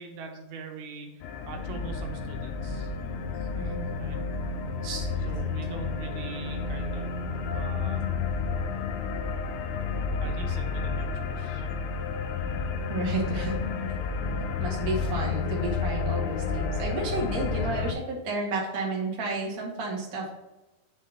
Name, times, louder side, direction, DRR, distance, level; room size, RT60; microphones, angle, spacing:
voice 1, 0.0-2.9 4.0-4.2 5.3-7.1 7.5-8.1 10.2-11.7, right 4 dB, 80° right, 3 dB, 2.8 m, -43 dB
sound 1, 1.2-17.9, left 4 dB, 85° left, 2.6 m, -31 dB
voice 2, 3.6-4.0 4.8-5.1 12.9-13.6 14.6-20.3, right 2 dB, 45° right, -3 dB, 1.1 m, -32 dB
8.7 x 3.7 x 4.1 m, 1.0 s
omnidirectional pair, 4.5 m